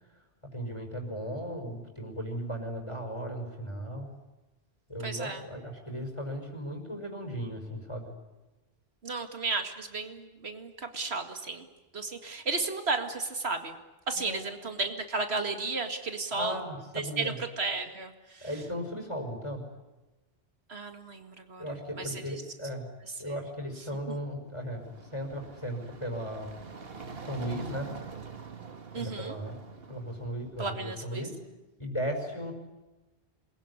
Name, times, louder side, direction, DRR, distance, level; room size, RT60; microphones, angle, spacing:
voice 1, 0.5-4.1 4.9-8.1 14.2-14.4 16.3-17.4 18.4-19.6 21.6-22.9 23.2-26.5 27.2-27.9 28.9-29.6 29.9-31.4 31.8-32.5, equal, 30° left, 4 dB, 5.7 m, -36 dB
voice 2, 5.0-5.4 9.0-11.7 11.9-13.8 14.1-16.6 16.9-18.5 20.7-22.4 23.2-23.4 23.8-24.2 28.9-29.4 30.6-31.3, right 3 dB, 90° right, 6 dB, 2.4 m, -34 dB
sound 1, 24.6-30.6, right 5 dB, 70° right, 1.9 m, -44 dB
27.5 x 22.0 x 9.9 m, 1.1 s
omnidirectional pair, 1.0 m